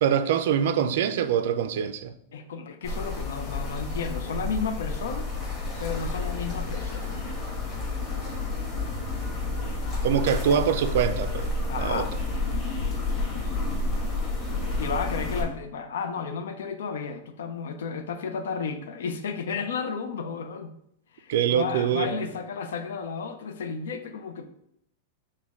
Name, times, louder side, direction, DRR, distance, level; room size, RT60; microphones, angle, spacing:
voice 1, 0.0-2.1 10.0-11.5 11.8-12.1 21.3-22.2, right 8 dB, 65° right, 0.3 m, -24 dB
voice 2, 2.3-5.3 5.8-7.1 11.7-12.1 13.7-13.8 14.5-20.8 21.1-24.5, left 5 dB, 90° left, 0.5 m, -33 dB
sound 1, 2.8-15.4, left 2 dB, 20° left, 1.3 m, -30 dB
6.1 x 2.2 x 3.5 m
supercardioid pair, 165°, 0 cm